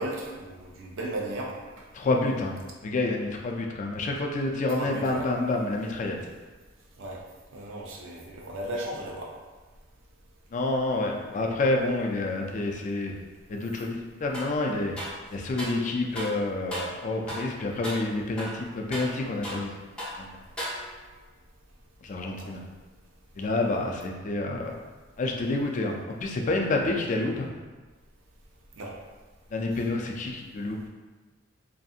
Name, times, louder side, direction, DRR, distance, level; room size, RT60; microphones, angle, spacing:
voice 1, 0.0-1.6 4.8-5.3 7.0-7.2 7.5-9.3 22.4-22.6 28.8-29.0, right 1 dB, 85° right, -2 dB, 0.5 m, -35 dB
voice 2, 1.9-2.6 2.8-6.2 10.5-13.1 13.5-14.9 15.3-19.7 20.2-20.4 22.0-22.6 23.4-24.8 25.2-27.5 29.5-30.8, left 2 dB, 40° left, 1 dB, 0.3 m, -28 dB
sound 1, 14.3-14.6 15.0-15.8 16.1-16.4 16.7-17.0 17.3-17.5 17.8-18.1 18.4-19.7 20.0-20.2 20.6-21.1, equal, 5° left, 0.7 m, -36 dB
2.6 x 2.5 x 2.4 m, 1.3 s
head